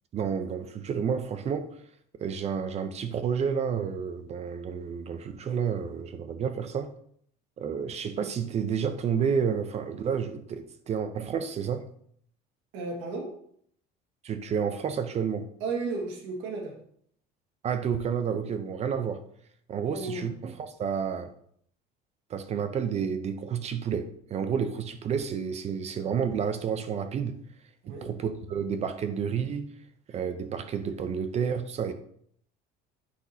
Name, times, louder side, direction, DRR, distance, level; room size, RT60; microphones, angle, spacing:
voice 1, 0.1-1.7 2.2-6.9 7.6-11.8 14.2-15.5 17.6-19.2 19.7-21.3 22.3-27.3 27.9-29.7 30.1-31.9, right 7 dB, 35° right, 10 dB, 0.6 m, -30 dB
voice 2, 12.7-13.3 15.6-16.7 19.8-20.3 27.8-28.1, right 3 dB, 80° right, 0 dB, 1.9 m, -33 dB
8.5 x 6.0 x 2.7 m, 0.65 s
cardioid pair, 130°, 19 cm